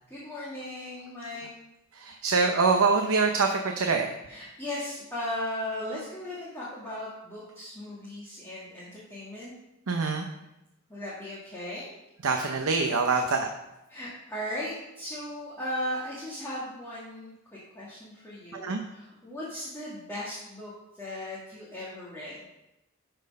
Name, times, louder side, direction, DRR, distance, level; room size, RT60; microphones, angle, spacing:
voice 1, 0.1-1.5 4.3-9.5 10.9-11.9 13.9-17.3 17.7-22.4, left 1 dB, 10° left, -9 dB, 1.8 m, -37 dB
voice 2, 2.0-4.1 9.9-10.3 12.2-13.5 18.5-18.8, right 4 dB, 90° right, 4 dB, 0.7 m, -25 dB
11.5 x 4.5 x 5.3 m, 0.93 s
head